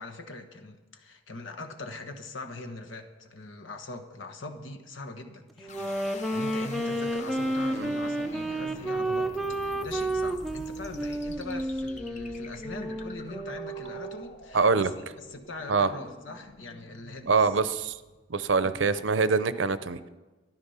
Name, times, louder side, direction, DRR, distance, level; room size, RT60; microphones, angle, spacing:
voice 1, 0.0-17.5 18.6-18.7, left 2 dB, 85° left, 6 dB, 1.3 m, -42 dB
Wind instrument woodwind instrument, 5.6-14.3, right 1 dB, ahead, 0.5 m, -31 dB
sound 1, 5.7-18.6, left 2 dB, 40° left, 0.9 m, -46 dB
voice 2, 14.5-14.9 15.7-15.9 17.3-18.0 18.3-20.1, right 4 dB, 80° right, 13 dB, 0.7 m, -24 dB
13.5 x 11.0 x 5.7 m, 1.2 s
head